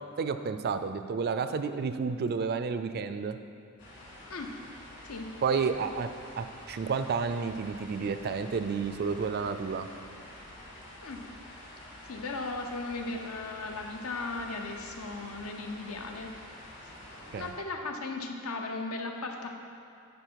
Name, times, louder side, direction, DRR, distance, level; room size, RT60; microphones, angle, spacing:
voice 1, 0.2-3.4 5.4-6.1 6.4-9.9 17.3-17.5, right 5 dB, 45° right, 9 dB, 0.4 m, -31 dB
sound 1, 3.8-17.5, left 1 dB, 55° left, 2.0 m, -48 dB
voice 2, 12.0-16.3 17.4-19.5, left 3 dB, 85° left, 3 dB, 0.8 m, -36 dB
10.5 x 4.2 x 4.6 m, 2.7 s
head